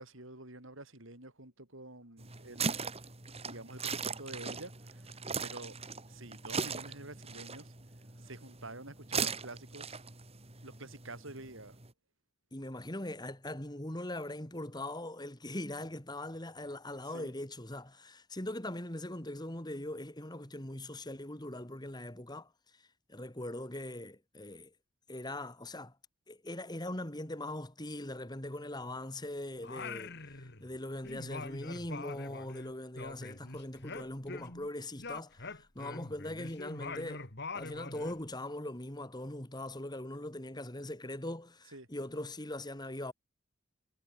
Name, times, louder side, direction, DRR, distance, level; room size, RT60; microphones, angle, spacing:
voice 1, 0.0-2.8 3.4-5.8 6.1-7.7 8.2-10.0 10.6-11.8 17.1-17.3 41.7-41.9, right 2 dB, 70° right, 7.3 m, -48 dB
sound 1, 2.2-11.9, right 5 dB, 30° right, 3.2 m, -39 dB
voice 2, 12.5-22.5 23.1-24.7 25.1-25.9 26.3-37.3 37.5-43.1, left 1 dB, 20° left, 2.5 m, -41 dB
Singing, 29.6-30.8 31.0-34.7 35.0-38.2, left 3 dB, 55° left, 3.0 m, -44 dB
head